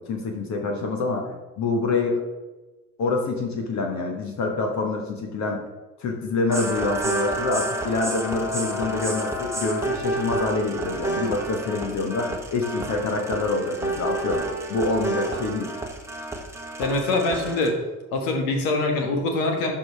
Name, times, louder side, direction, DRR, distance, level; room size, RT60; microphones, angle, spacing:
voice 1, 0.0-2.2 3.0-5.6 6.0-15.7, left 3 dB, 40° left, 2 dB, 1.3 m, -26 dB
sound 1, 6.5-17.7, right 1 dB, 5° right, 1.2 m, -30 dB
voice 2, 16.8-17.8 18.1-19.7, left 2 dB, 60° left, 3 dB, 1.5 m, -24 dB
12.0 x 4.9 x 3.5 m, 1.2 s
figure-of-eight pair, 60°, 43 cm